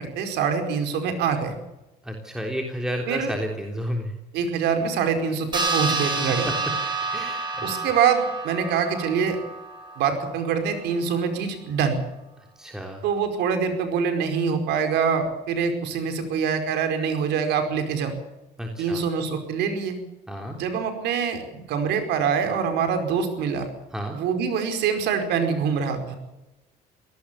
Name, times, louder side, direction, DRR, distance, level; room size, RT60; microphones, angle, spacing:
voice 1, 0.0-1.6 3.1-3.3 4.3-6.5 7.6-9.4 10.0-12.0 13.0-18.1 18.8-20.0 20.5-23.7 24.1-26.2, right 6 dB, 85° right, 6 dB, 5.0 m, -25 dB
voice 2, 2.0-4.1 6.3-6.5 7.1-7.7 12.6-13.0 18.6-19.0 20.3-20.6 23.9-24.2, equal, 5° right, 2 dB, 3.5 m, -31 dB
sound 1, 5.5-10.4, right 3 dB, 25° right, 7.8 m, -29 dB
24.0 x 18.0 x 7.1 m, 0.99 s
cardioid pair, 110°, 17 cm